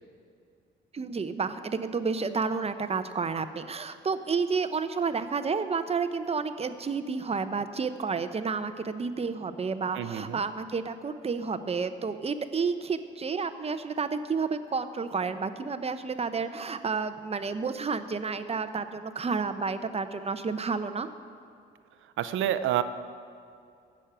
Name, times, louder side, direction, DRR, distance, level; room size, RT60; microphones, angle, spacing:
voice 1, 0.9-21.1, right 5 dB, 30° right, 10 dB, 0.8 m, -30 dB
voice 2, 9.9-10.4 22.2-22.8, right 11 dB, 80° right, 12 dB, 0.7 m, -28 dB
15.5 x 6.4 x 8.9 m, 2.4 s
cardioid pair, 90°, 20 cm